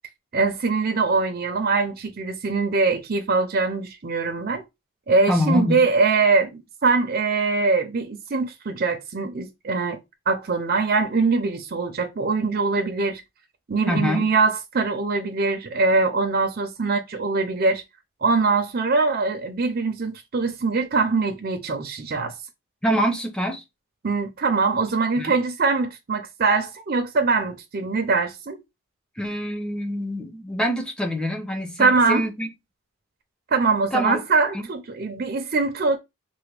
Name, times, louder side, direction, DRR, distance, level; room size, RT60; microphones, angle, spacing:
voice 1, 0.3-4.6 5.1-10.0 10.3-13.2 13.7-17.8 18.2-22.3 24.0-28.6 31.8-32.3 33.5-36.0, right 4 dB, 45° right, 0.5 m, -22 dB
voice 2, 5.3-5.9 13.9-14.3 22.8-23.6 25.2-25.3 29.2-32.5 33.9-34.2 34.5-34.7, equal, 5° left, 0.5 m, -25 dB
3.3 x 2.2 x 3.2 m
head